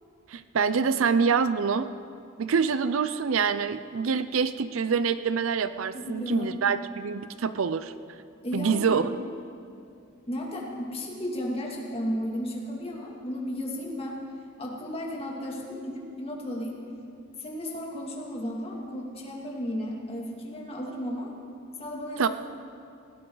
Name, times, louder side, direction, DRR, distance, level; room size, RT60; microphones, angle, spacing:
voice 1, 0.3-1.9 2.4-7.9 8.5-9.1 22.2-22.3, right 6 dB, 70° right, 13 dB, 0.5 m, -26 dB
voice 2, 5.9-6.6 8.4-9.1 10.3-14.2 14.6-16.8 17.4-21.3 21.8-22.3, equal, 30° left, -2 dB, 2.5 m, -34 dB
19.5 x 17.0 x 4.0 m, 2.5 s
head